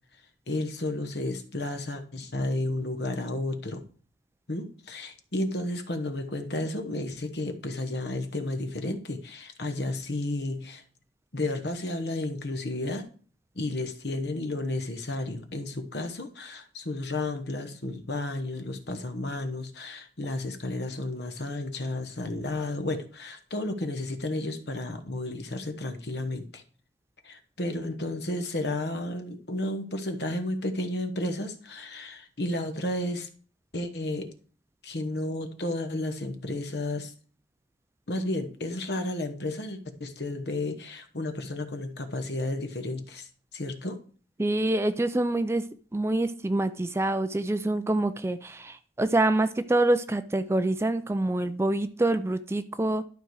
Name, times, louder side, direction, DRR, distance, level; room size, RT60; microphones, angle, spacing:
voice 1, 0.5-3.8 4.5-10.8 11.3-13.1 13.5-26.6 27.2-33.3 33.7-34.3 34.8-37.1 38.1-44.0, left 2 dB, 60° left, 8 dB, 1.1 m, -32 dB
voice 2, 44.4-45.6 45.9-53.0, right 2 dB, 15° right, 11 dB, 0.3 m, -26 dB
12.0 x 5.0 x 4.7 m, 0.42 s
head